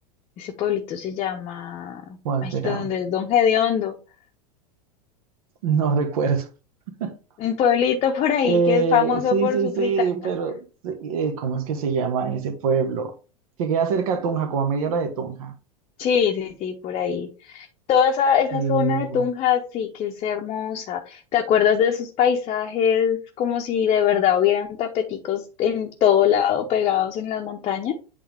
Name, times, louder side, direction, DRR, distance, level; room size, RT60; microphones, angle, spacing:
voice 1, 0.4-3.9 7.4-10.3 16.0-28.0, left 8 dB, 30° left, 0.8 m, -23 dB
voice 2, 2.2-2.9 5.6-6.5 7.0-7.1 8.4-13.1 13.6-15.5 18.5-19.2, right 5 dB, 60° right, 1.3 m, -24 dB
8.5 x 3.7 x 3.4 m
figure-of-eight pair, 90°, 21 cm